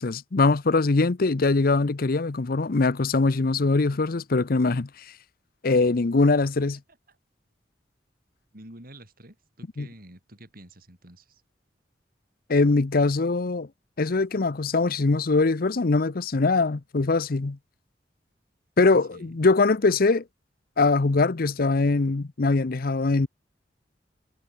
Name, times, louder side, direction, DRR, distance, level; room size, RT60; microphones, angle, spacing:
voice 1, 0.0-4.9 5.6-6.8 9.8-9.9 12.5-13.7 14.0-17.6 18.8-20.2 20.8-23.3, left 3 dB, 55° left, 0.7 m, -22 dB
voice 2, 8.5-11.4 18.8-19.4, right 1 dB, 55° right, 6.2 m, -49 dB
head